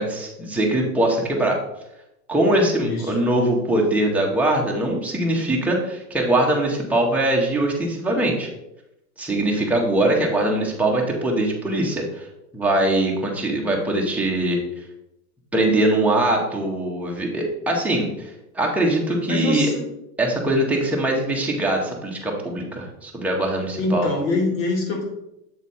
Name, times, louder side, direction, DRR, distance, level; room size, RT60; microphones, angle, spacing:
voice 1, 0.0-1.6 2.3-8.5 9.2-12.3 12.5-14.6 15.5-19.7 20.2-24.1, right 1 dB, 5° right, -2 dB, 0.8 m, -22 dB
voice 2, 2.8-3.1 19.3-19.9 23.8-25.0, left 2 dB, 85° left, -1 dB, 2.6 m, -24 dB
7.5 x 4.0 x 4.1 m, 0.86 s
supercardioid pair, 150°, 49 cm